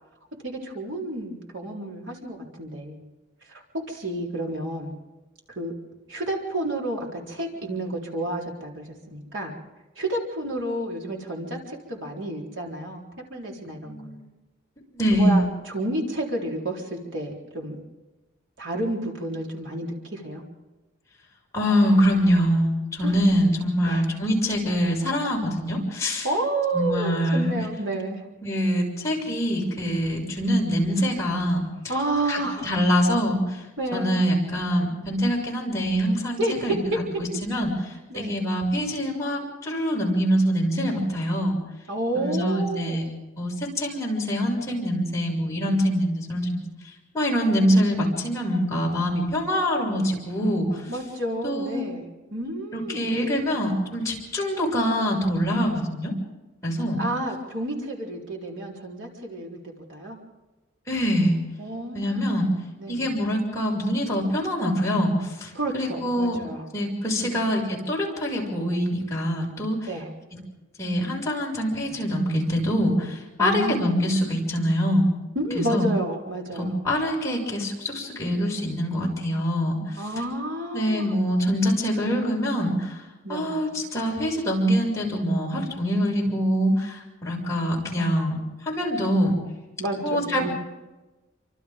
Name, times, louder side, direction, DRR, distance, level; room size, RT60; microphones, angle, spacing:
voice 1, 0.4-3.0 3.4-3.6 3.9-4.9 5.6-5.7 6.1-9.5 10.0-13.0 13.3-14.2 15.1-17.8 18.6-20.4 23.0-23.2 23.8-24.0 26.2-28.2 31.9-32.7 33.8-34.2 36.4-37.0 38.1-38.4 41.9-43.1 50.9-53.1 57.0-60.2 61.6-62.2 62.8-63.1 65.5-66.7 67.2-67.3 69.9-70.1 73.4-74.1 75.3-76.8 80.0-81.1 83.2-83.5 89.8-90.5, right 1 dB, 70° right, -1 dB, 4.0 m, -30 dB
voice 2, 13.8-14.3 14.9-15.4 21.5-26.3 26.7-27.5 28.4-31.7 32.3-33.6 33.9-36.8 37.4-41.5 42.1-43.0 43.4-46.7 47.1-50.9 51.4-51.9 52.7-56.1 56.6-57.0 60.9-61.4 61.9-62.5 62.9-66.4 66.7-69.9 70.8-75.1 75.6-75.9 76.5-80.0 80.7-83.0 83.3-89.3 90.0-90.5, equal, 15° left, -4 dB, 6.4 m, -24 dB
29.0 x 25.5 x 3.8 m, 1.1 s
head